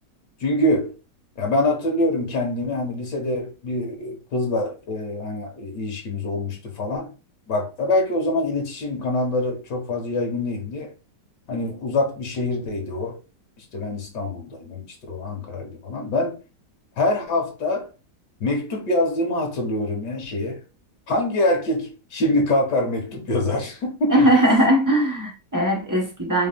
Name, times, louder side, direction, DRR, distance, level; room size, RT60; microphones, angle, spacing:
voice 1, 0.4-0.9 1.4-7.1 7.5-10.9 11.5-13.2 13.6-16.4 17.0-17.9 18.4-20.6 21.1-24.3, left 1 dB, 80° left, 1.9 m, -25 dB
voice 2, 24.1-26.5, right 1 dB, 20° right, 0.6 m, -19 dB
4.7 x 3.7 x 2.3 m
omnidirectional pair, 1.8 m